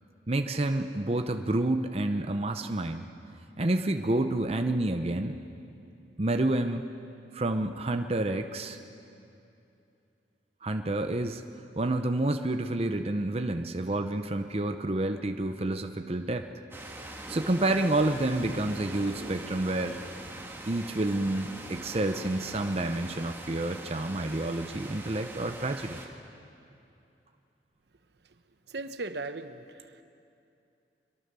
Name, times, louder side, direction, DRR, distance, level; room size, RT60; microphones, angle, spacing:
voice 1, 0.3-3.0 3.6-5.4 6.2-6.8 7.3-8.8 10.6-11.4 11.8-16.5 17.3-20.0 20.7-26.0, right 2 dB, 35° right, 6 dB, 0.7 m, -29 dB
sound 1, 16.7-26.1, right 1 dB, 15° right, 1.8 m, -42 dB
voice 2, 28.7-30.0, right 3 dB, 70° right, 9 dB, 1.0 m, -38 dB
23.0 x 22.0 x 6.8 m, 2.7 s
head